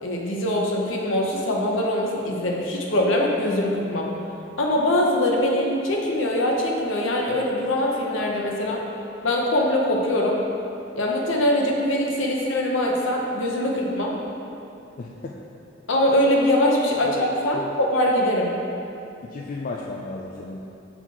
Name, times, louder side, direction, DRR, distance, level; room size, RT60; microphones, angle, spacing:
voice 1, 0.0-4.1 4.6-8.8 9.2-10.4 11.0-14.2 15.9-18.5, left 1 dB, 80° left, -1 dB, 0.8 m, -22 dB
voice 2, 15.0-15.4 17.1-17.2 17.5-17.6 19.2-20.6, left 3 dB, 45° left, -2 dB, 0.3 m, -34 dB
5.9 x 4.0 x 4.7 m, 2.8 s
head